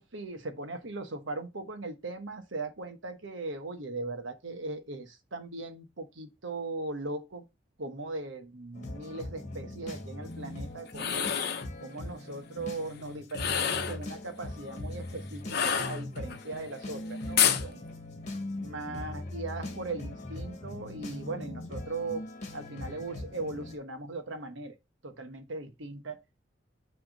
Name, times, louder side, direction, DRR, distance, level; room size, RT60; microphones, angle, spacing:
voice 1, 0.0-7.4 7.8-11.3 11.8-17.8 18.6-22.2 22.5-24.7 25.0-26.2, right 2 dB, 75° right, 1.1 m, -39 dB
sound 1, 8.7-23.8, left 1 dB, 35° left, 1.5 m, -41 dB
sound 2, 10.9-11.7 13.3-14.0 15.5-16.4 17.4-17.7, left 8 dB, 55° left, 0.8 m, -28 dB
6.3 x 3.5 x 5.0 m
head